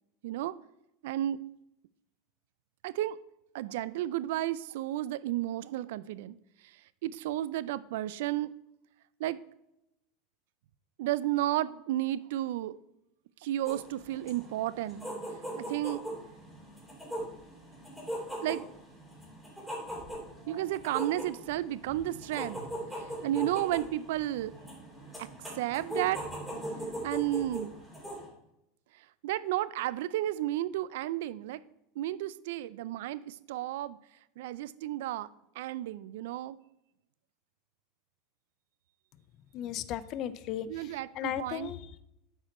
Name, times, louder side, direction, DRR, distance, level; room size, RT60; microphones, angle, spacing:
voice 1, 0.2-0.5 1.0-1.4 2.8-3.2 3.5-6.4 7.0-8.5 9.2-9.4 11.0-12.8 13.4-15.1 15.6-16.0 18.4-18.6 20.5-22.6 23.2-24.5 25.2-25.3 25.6-26.2 27.0-27.7 29.2-31.6 32.0-34.0 34.4-35.3 35.6-36.6 40.7-41.7, right 14 dB, 75° right, 18 dB, 0.4 m, -32 dB
sound 1, 13.6-28.3, right 1 dB, ahead, 2.8 m, -40 dB
voice 2, 39.5-42.0, left 11 dB, 45° left, 15 dB, 0.5 m, -36 dB
8.1 x 5.0 x 4.2 m, 0.85 s
supercardioid pair, 115°, 0 cm